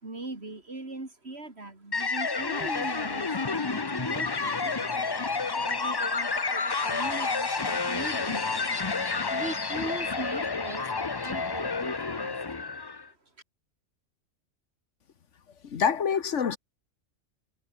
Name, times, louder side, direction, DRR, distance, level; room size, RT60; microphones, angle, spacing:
voice 1, 0.0-4.9 5.6-8.7 9.3-12.3, right 2 dB, 55° right, 4.0 m, -40 dB
sound 1, 1.9-13.1, left 4 dB, 25° left, 0.6 m, -30 dB
voice 2, 15.7-16.6, left 7 dB, 70° left, 1.5 m, -26 dB
omnidirectional pair, 1.3 m